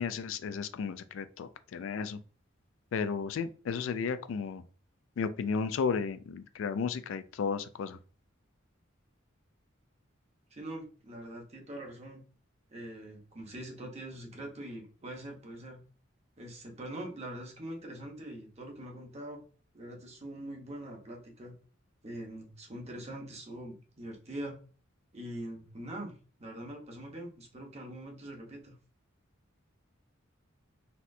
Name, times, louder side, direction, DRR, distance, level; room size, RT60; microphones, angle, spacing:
voice 1, 0.0-2.2 2.9-4.6 5.2-8.0, left 5 dB, 80° left, 0.3 m, -33 dB
voice 2, 10.5-12.2 12.7-15.8 16.4-19.4 19.7-21.5 22.0-24.6 25.1-26.1 26.4-28.7, right 1 dB, 35° right, 0.9 m, -43 dB
4.2 x 2.1 x 2.6 m
head